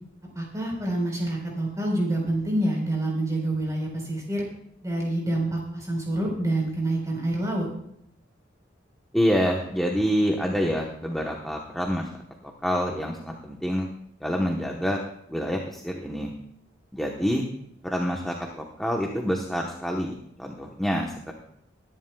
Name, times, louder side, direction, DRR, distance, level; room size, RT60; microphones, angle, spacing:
voice 1, 0.3-4.4 4.8-7.7, right 1 dB, 15° right, -1 dB, 4.2 m, -27 dB
voice 2, 9.1-12.1 12.4-13.9 14.2-15.0 15.3-16.3 16.9-17.4 17.8-20.1 20.4-21.3, equal, ahead, -1 dB, 1.0 m, -27 dB
22.0 x 11.0 x 2.3 m, 0.72 s
head